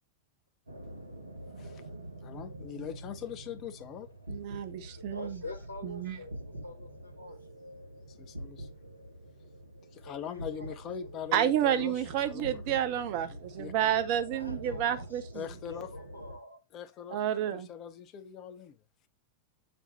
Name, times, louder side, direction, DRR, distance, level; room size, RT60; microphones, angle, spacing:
sound 1, 0.7-16.4, right 1 dB, 85° right, 0.9 m, -45 dB
voice 1, 2.2-4.1 8.1-8.7 9.9-12.0 12.3-12.6 13.3-13.7 15.3-15.9 16.7-17.2 17.5-18.8, left 8 dB, 35° left, 0.6 m, -41 dB
voice 2, 4.3-5.4 5.8-6.2 11.3-15.5 17.1-17.7, right 10 dB, 45° right, 0.7 m, -30 dB
voice 3, 4.9-6.3 6.6-7.4 10.0-10.8 14.3-15.1 15.6-16.6, left 2 dB, 85° left, 1.2 m, -45 dB
5.4 x 2.2 x 4.1 m
figure-of-eight pair, 90°, 0 cm